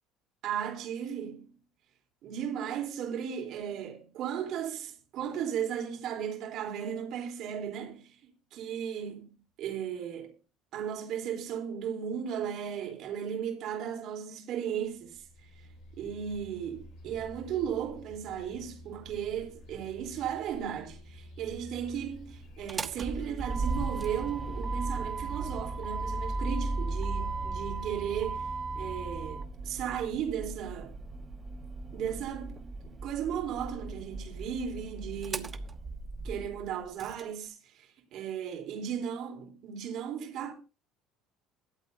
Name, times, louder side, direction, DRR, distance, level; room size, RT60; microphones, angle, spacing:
voice 1, 0.4-1.5 2.2-8.2 8.5-9.3 9.6-10.4 10.7-15.2 16.0-28.5 28.8-30.9 31.9-35.7 36.2-40.5, right 8 dB, 60° right, 3.8 m, -36 dB
sound 1, 15.0-29.3, left 1 dB, 60° left, 6.7 m, -47 dB
Motor vehicle (road), 22.5-37.2, right 3 dB, 30° right, 1.2 m, -36 dB
21.5 x 8.2 x 2.8 m
hypercardioid pair, 70°, 0 cm